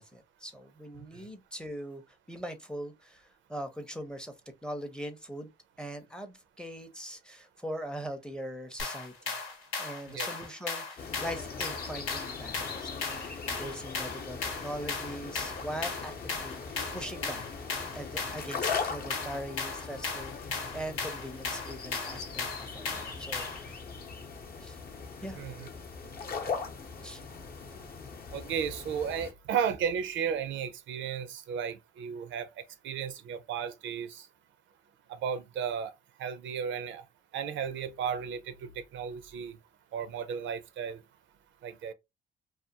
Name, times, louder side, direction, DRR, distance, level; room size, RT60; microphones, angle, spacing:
voice 1, 0.0-2.0 2.3-4.3 4.6-5.5 5.8-9.3 9.8-17.4 17.9-23.7 24.6-24.8 25.2-25.4 27.0-27.2, equal, 5° left, 0.5 m, -41 dB
sound 1, 8.8-23.7, left 4 dB, 90° left, 0.9 m, -37 dB
sound 2, 11.0-29.3, left 5 dB, 50° left, 0.7 m, -40 dB
voice 2, 25.3-25.7 28.3-34.3 35.2-35.9 36.2-37.0 37.3-39.6 39.9-41.0 41.6-41.9, right 7 dB, 70° right, 0.4 m, -34 dB
2.4 x 2.3 x 2.7 m
cardioid pair, 90°, 20 cm